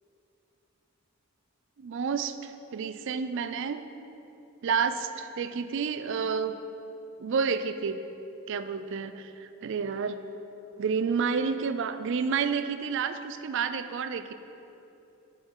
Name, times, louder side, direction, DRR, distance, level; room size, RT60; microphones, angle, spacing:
voice 1, 1.8-3.8 4.6-6.6 7.2-8.0 8.5-10.2 10.8-14.3, right 6 dB, 55° right, 11 dB, 0.3 m, -30 dB
8.4 x 7.7 x 3.7 m, 2.9 s
head